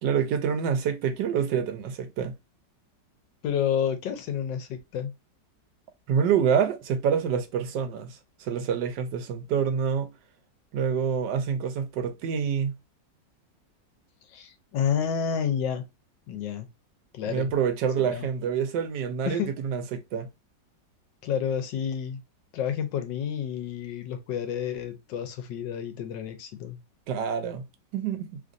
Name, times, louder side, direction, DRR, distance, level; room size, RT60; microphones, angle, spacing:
voice 1, 0.0-2.3 6.1-10.1 10.7-12.7 17.3-20.3 27.1-27.7 27.9-28.4, right 7 dB, 80° right, 1.2 m, -27 dB
voice 2, 3.4-5.1 14.3-15.8 16.3-16.7 17.1-17.5 18.0-18.3 19.3-19.5 21.2-22.2 22.5-26.8, left 8 dB, 85° left, 1.4 m, -30 dB
3.2 x 2.5 x 2.5 m
omnidirectional pair, 2.0 m